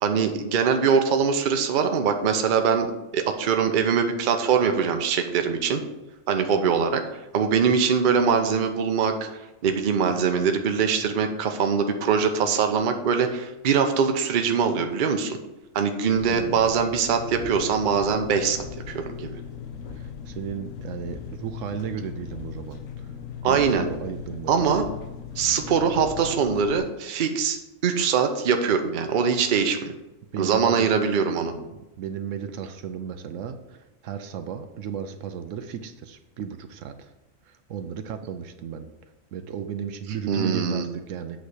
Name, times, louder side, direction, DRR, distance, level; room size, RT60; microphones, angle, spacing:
voice 1, 0.0-2.9 3.1-5.8 6.3-7.0 7.3-9.3 9.6-15.4 15.7-19.4 23.4-23.9 24.5-24.8 25.4-29.9 30.4-31.5 40.3-40.8, right 6 dB, 45° right, 6 dB, 0.7 m, -22 dB
voice 2, 16.1-16.8 19.9-23.1 23.4-24.7 30.3-30.9 31.3-37.1 37.4-38.9 39.3-41.4, right 8 dB, 75° right, 8 dB, 0.9 m, -35 dB
Engine, 16.2-26.8, left 7 dB, 85° left, 1.2 m, -38 dB
8.1 x 3.2 x 6.4 m, 0.98 s
omnidirectional pair, 1.4 m